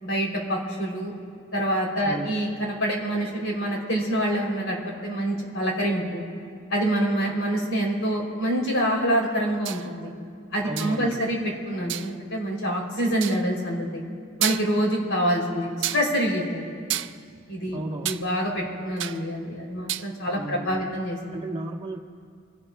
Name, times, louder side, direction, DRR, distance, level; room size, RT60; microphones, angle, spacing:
voice 1, 0.0-1.1 1.5-6.2 6.7-10.1 10.5-14.0 14.4-16.6 16.9-17.0 17.5-21.3, equal, 70° left, -1 dB, 3.3 m, -26 dB
voice 2, 2.0-2.4 10.6-11.3 17.7-18.2 20.3-20.9 21.3-22.0, right 2 dB, 25° right, 0 dB, 1.2 m, -34 dB
sound 1, 9.7-9.9 10.8-11.1 11.9-12.1 13.2-13.5 14.0-14.1 14.4-14.9 15.8-16.1 16.9-18.2 18.5-19.3 19.6-20.1, right 13 dB, 60° right, 0.4 m, -30 dB
27.0 x 17.0 x 2.3 m, 2.2 s
head